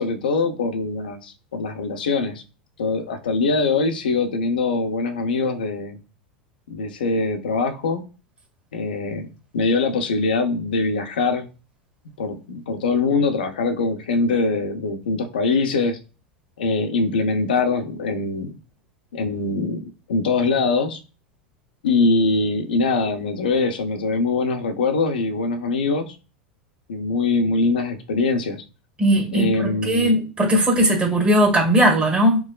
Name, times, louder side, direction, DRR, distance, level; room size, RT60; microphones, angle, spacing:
voice 1, 0.0-2.4 2.8-6.0 6.7-8.0 8.7-9.3 9.5-11.5 12.2-16.0 16.6-18.5 19.1-21.0 21.8-26.2 26.9-28.6 29.3-30.2, left 3 dB, 70° left, 0.7 m, -23 dB
voice 2, 29.0-32.4, equal, 20° right, 1.3 m, -18 dB
4.6 x 2.1 x 2.4 m
figure-of-eight pair, 85°, 5 cm